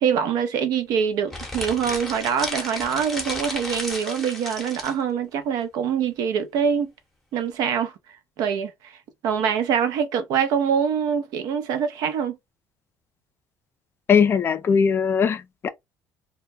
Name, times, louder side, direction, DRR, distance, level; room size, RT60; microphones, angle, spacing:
voice 1, 0.0-6.9 7.3-7.9 8.4-8.9 9.2-12.4, right 7 dB, 70° right, 0.5 m, -24 dB
sound 1, 1.3-5.0, left 1 dB, 5° left, 0.8 m, -33 dB
voice 2, 14.1-15.7, left 6 dB, 35° left, 0.3 m, -20 dB
2.2 x 2.2 x 2.6 m
cardioid pair, 115°, 7 cm